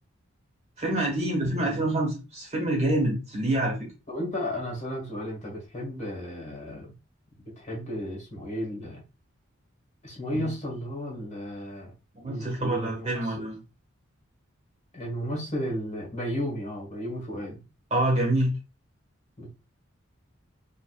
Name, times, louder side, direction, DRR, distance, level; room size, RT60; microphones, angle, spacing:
voice 1, 0.8-3.8 10.4-10.5 12.1-13.6 17.9-18.5, right 1 dB, 35° right, 0 dB, 1.4 m, -26 dB
voice 2, 4.1-6.9 7.6-9.0 10.0-11.9 12.3-13.5 14.9-17.6 19.4-19.5, equal, 35° left, -2 dB, 1.6 m, -34 dB
5.1 x 2.5 x 2.3 m, 0.29 s
head